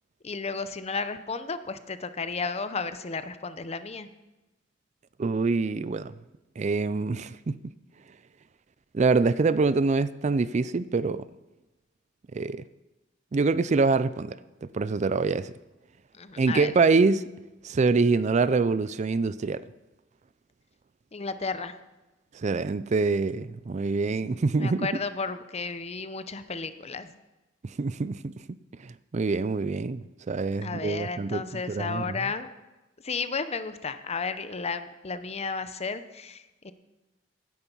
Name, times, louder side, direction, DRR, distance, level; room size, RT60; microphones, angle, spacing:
voice 1, 0.2-4.1 16.1-16.7 21.1-21.7 24.2-27.2 30.6-32.5 33.0-36.7, left 4 dB, 35° left, 11 dB, 0.8 m, -33 dB
voice 2, 5.2-6.1 6.6-7.6 8.9-11.3 12.3-12.6 13.3-15.5 16.4-17.2 17.6-19.6 22.3-24.9 27.6-28.3 28.8-32.2, right 4 dB, 40° right, 16 dB, 0.4 m, -25 dB
17.0 x 10.5 x 5.5 m, 1.1 s
head